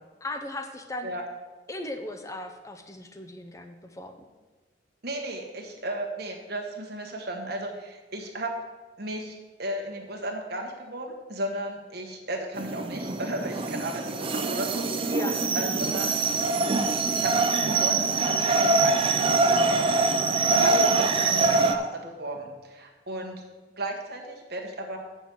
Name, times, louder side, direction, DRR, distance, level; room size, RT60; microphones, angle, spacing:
voice 1, 0.2-1.1 1.7-4.1 15.1-15.5 20.7-21.0, left 1 dB, 15° left, 6 dB, 0.6 m, -36 dB
voice 2, 5.0-8.5 9.0-15.1 15.5-16.2 17.1-23.4 23.8-25.0, right 1 dB, 60° right, 1 dB, 1.5 m, -35 dB
sound 1, 12.5-21.7, right 3 dB, 30° right, 0.5 m, -24 dB
7.0 x 6.2 x 7.6 m, 1.3 s
head